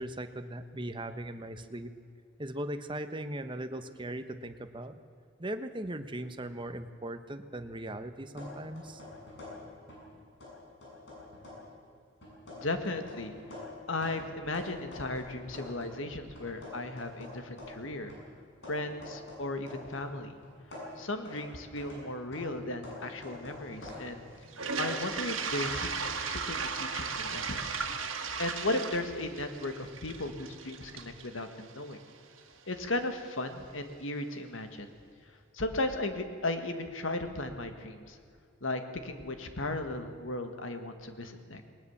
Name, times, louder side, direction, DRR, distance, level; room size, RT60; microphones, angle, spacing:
voice 1, 0.0-1.9 2.4-5.0 5.4-9.0, right 1 dB, 25° right, 9 dB, 1.0 m, -39 dB
sound 1, 8.4-10.1 10.4-11.7 12.2-16.0 16.4-20.1 20.4-25.0, left 2 dB, 65° left, 7.6 m, -47 dB
voice 2, 12.6-13.4 13.9-18.1 18.7-20.4 21.0-24.2 24.8-27.8 28.4-32.0 32.7-34.9 35.3-38.2 38.6-41.7, left 2 dB, 80° left, 7 dB, 1.8 m, -36 dB
Toilet flush, 24.5-32.4, right 5 dB, 85° right, 1.9 m, -36 dB
19.5 x 19.5 x 7.2 m, 2.3 s
head